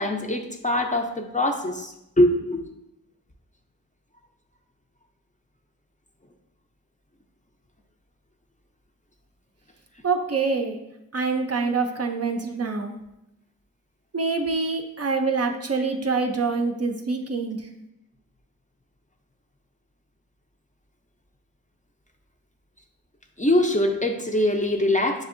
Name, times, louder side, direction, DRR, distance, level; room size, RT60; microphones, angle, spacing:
voice 1, 0.0-2.6 23.4-25.3, left 1 dB, 20° left, 2 dB, 0.5 m, -23 dB
voice 2, 10.0-10.8 11.1-12.9 14.1-17.6, right 4 dB, 45° right, 4 dB, 0.5 m, -25 dB
6.9 x 2.6 x 2.5 m, 0.89 s
wide cardioid pair, 40°, 36 cm